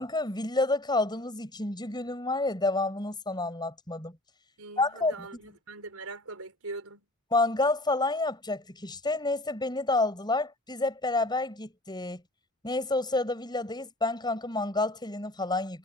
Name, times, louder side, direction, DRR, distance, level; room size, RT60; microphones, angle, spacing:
voice 1, 0.0-4.2 4.8-5.3 7.3-12.2 12.6-15.8, left 2 dB, 20° left, 6.8 m, -29 dB
voice 2, 4.6-7.0, right 3 dB, 85° right, 4.2 m, -42 dB
head